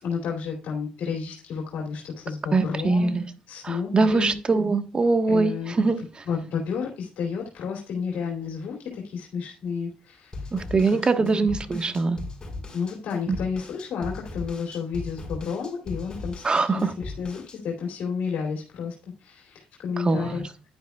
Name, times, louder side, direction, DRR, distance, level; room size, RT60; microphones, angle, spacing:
voice 1, 0.0-3.1 3.5-4.4 5.3-5.7 6.3-10.5 11.2-11.4 12.7-20.7, left 6 dB, 70° left, 2.8 m, -31 dB
voice 2, 2.5-3.3 3.6-6.2 10.5-12.2 13.3-13.4 16.4-16.9 20.0-20.4, right 3 dB, 30° right, 1.3 m, -23 dB
sound 1, 10.3-17.6, left 2 dB, 30° left, 5.2 m, -38 dB
10.5 x 9.4 x 2.3 m
supercardioid pair, 65°, 3 cm